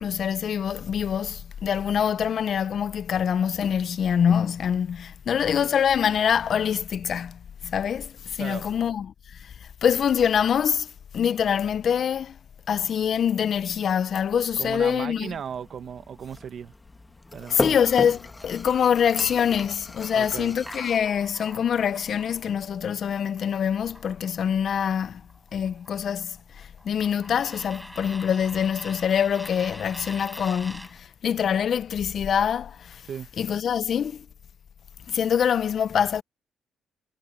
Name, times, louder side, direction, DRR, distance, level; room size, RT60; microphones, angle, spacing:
voice 1, 0.0-12.4 12.7-15.4 17.5-25.2 25.5-33.0 33.4-34.3 35.1-36.2, left 8 dB, 60° left, 0.5 m, -25 dB
voice 2, 14.6-16.7 17.3-17.8 20.1-20.6 33.1-33.3, right 8 dB, 55° right, 1.0 m, -36 dB
sound 1, 15.3-21.0, left 2 dB, 15° left, 1.3 m, -35 dB
sound 2, 20.6-24.7 25.0-31.0, equal, ahead, 6.5 m, -45 dB
cardioid pair, 90°, 0 cm